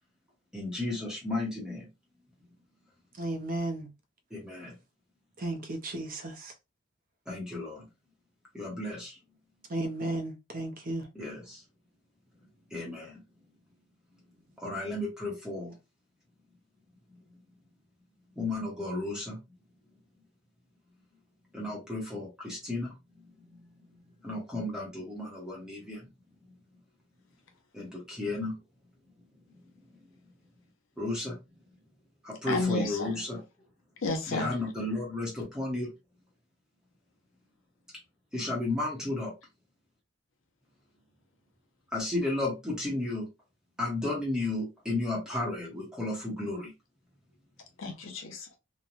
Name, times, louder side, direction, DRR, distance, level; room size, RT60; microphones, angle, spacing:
voice 1, 0.5-1.9 4.3-4.7 7.3-7.8 8.5-9.2 11.2-11.6 12.7-13.1 14.6-15.7 18.4-19.4 21.5-22.9 24.2-26.1 27.7-28.5 31.0-31.4 32.2-33.4 34.3-35.9 38.3-39.3 41.9-43.3 43.8-46.7, left 2 dB, 5° right, 0.8 m, -33 dB
voice 2, 3.1-3.9 5.4-6.5 9.7-11.1, right 2 dB, 40° right, 0.6 m, -34 dB
voice 3, 32.5-33.2 34.0-34.6 47.8-48.6, left 3 dB, 70° left, 0.7 m, -32 dB
3.0 x 2.1 x 2.4 m
head